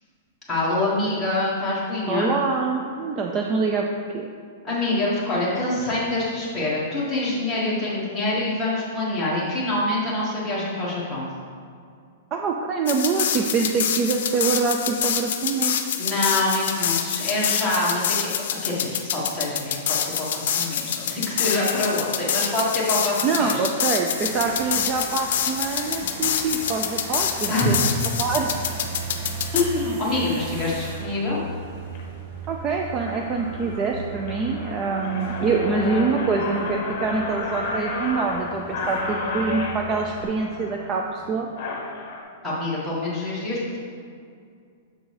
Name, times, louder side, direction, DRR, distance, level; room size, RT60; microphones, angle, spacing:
voice 1, 0.5-2.3 4.6-11.3 16.0-18.3 18.6-23.7 27.5-27.7 29.5-31.4 42.4-43.8, left 2 dB, 5° left, -10 dB, 1.6 m, -25 dB
voice 2, 2.1-3.9 4.1-4.3 12.3-15.8 23.2-27.9 28.2-28.5 32.5-41.5, right 4 dB, 25° right, 2 dB, 0.3 m, -25 dB
sound 1, 12.9-29.6, left 8 dB, 60° left, 0.6 m, -26 dB
sound 2, 24.2-40.3, right 5 dB, 40° right, 0.9 m, -37 dB
sound 3, 30.0-30.2 30.8-31.1 31.6-32.0 32.4-32.5 32.8-42.2, left 3 dB, 40° left, 1.0 m, -32 dB
7.3 x 3.9 x 4.8 m, 2.3 s
supercardioid pair, 170°, 0 cm